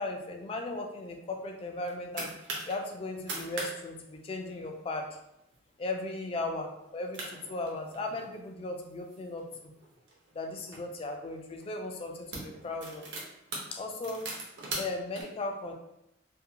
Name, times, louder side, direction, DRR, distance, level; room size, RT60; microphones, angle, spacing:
voice 1, 0.0-2.3 2.7-5.1 5.8-9.7 10.3-13.1 13.7-14.3 14.8-15.7, left 2 dB, 30° left, 3 dB, 0.3 m, -37 dB
sound 1, 1.6-2.7 3.1-3.7 4.0-4.1 4.4-4.8 5.3-5.6 6.0-6.1 6.8-6.9 7.1-8.3 8.9-10.8 11.6-11.7 12.1-15.2, right 2 dB, 70° right, 0.7 m, -40 dB
2.6 x 2.1 x 2.7 m, 0.84 s
head